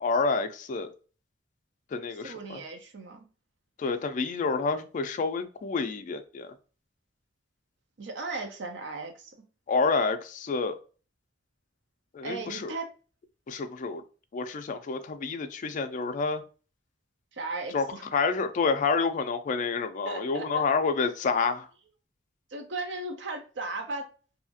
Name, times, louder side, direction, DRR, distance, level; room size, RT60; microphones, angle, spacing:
voice 1, 0.0-0.9 1.9-2.6 3.8-6.5 9.7-10.7 12.1-12.7 13.5-14.0 14.3-16.4 17.7-17.9 18.1-21.7, left 4 dB, 45° left, 0.4 m, -28 dB
voice 2, 2.2-3.3 8.0-9.3 12.2-12.9 17.3-18.1 19.6-19.7 20.0-20.6 22.5-24.0, right 3 dB, 70° right, 0.6 m, -36 dB
2.7 x 2.4 x 2.6 m
head